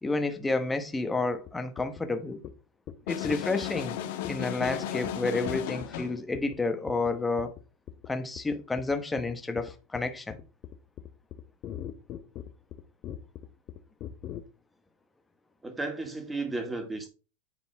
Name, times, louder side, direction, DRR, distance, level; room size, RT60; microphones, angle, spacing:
voice 1, 0.0-2.4 3.1-4.0 4.3-7.5 8.1-10.4, left 3 dB, 10° left, 1.0 m, -30 dB
sound 1, 1.5-1.6 1.8-2.0 2.4-2.5 2.9-3.0 3.2-3.8 4.2-4.3 4.7-4.8 5.0-5.1 5.5-6.0 6.3-6.6 6.9-7.1 7.4-7.6 7.9-8.1 8.4-14.4, left 11 dB, 40° left, 0.9 m, -40 dB
sound 2, 3.1-6.2, left 11 dB, 65° left, 1.2 m, -35 dB
voice 2, 15.6-17.1, right 3 dB, 10° right, 2.0 m, -34 dB
9.8 x 4.0 x 3.4 m
supercardioid pair, 125°, 0 cm